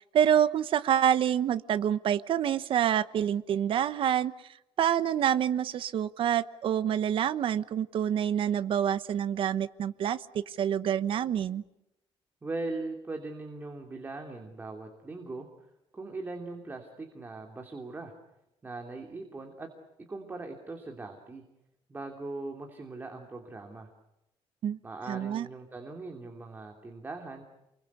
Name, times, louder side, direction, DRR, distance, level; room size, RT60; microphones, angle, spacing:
voice 1, 0.0-4.3 4.8-10.2 10.6-11.6 24.6-24.8 25.1-25.5, right 9 dB, 55° right, 13 dB, 1.0 m, -27 dB
voice 2, 12.4-15.5 15.9-18.1 18.6-19.7 20.1-21.4 21.9-23.9 24.8-27.4, right 3 dB, 20° right, 2 dB, 3.0 m, -40 dB
29.5 x 23.0 x 8.4 m, 0.89 s
cardioid pair, 160°, 10 cm